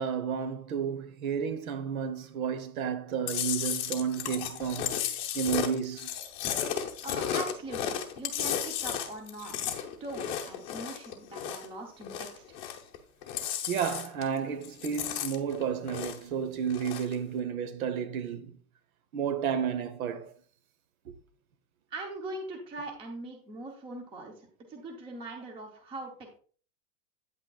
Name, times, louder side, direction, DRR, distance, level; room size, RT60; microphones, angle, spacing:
voice 1, 0.0-4.9 5.3-6.1 13.7-18.5 19.1-20.3 21.0-21.1, right 7 dB, 60° right, 1.2 m, -32 dB
Chewing mastication, 3.3-11.7 12.0-13.0 13.2-14.4 14.6-16.3 16.7-17.1, left 9 dB, 25° left, 0.8 m, -34 dB
voice 2, 7.0-12.4 21.9-26.4, right 2 dB, 10° right, 0.8 m, -41 dB
9.1 x 8.7 x 2.4 m
supercardioid pair, 175°, 47 cm